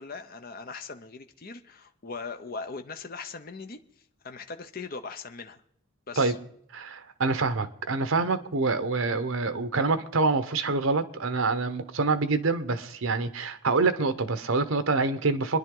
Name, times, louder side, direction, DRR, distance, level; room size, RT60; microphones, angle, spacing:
voice 1, 0.0-3.8 4.2-5.6 6.1-6.4, left 4 dB, 45° left, 0.8 m, -39 dB
voice 2, 6.7-15.6, right 3 dB, 75° right, 1.0 m, -26 dB
27.0 x 10.5 x 3.8 m
head